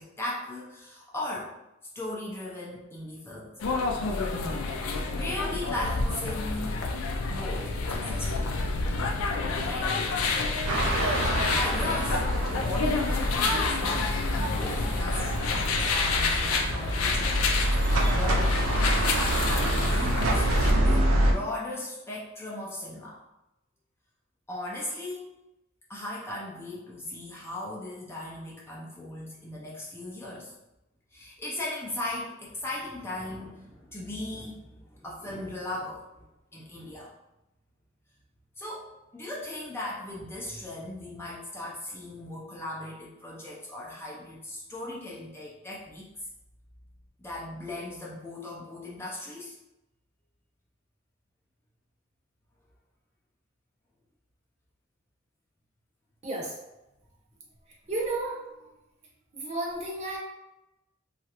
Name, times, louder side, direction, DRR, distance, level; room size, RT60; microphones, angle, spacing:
voice 1, 0.0-1.5 1.9-3.5 5.1-6.9 7.3-8.6 9.6-10.0 11.5-15.5 15.9-17.5 18.0-18.8 19.1-23.2 24.5-25.4 25.9-30.5 31.1-36.3 36.5-37.1 38.6-38.9 39.1-46.1 47.2-49.6, left 1 dB, 10° left, -5 dB, 0.4 m, -37 dB
sound 1, 3.6-20.7, left 3 dB, 80° left, 0.4 m, -28 dB
sound 2, 10.7-21.3, right 1 dB, 85° right, 0.5 m, -27 dB
voice 2, 56.2-56.6 57.9-58.7 59.3-60.2, right 2 dB, 35° right, -2 dB, 0.7 m, -32 dB
3.0 x 2.4 x 2.8 m, 0.94 s
head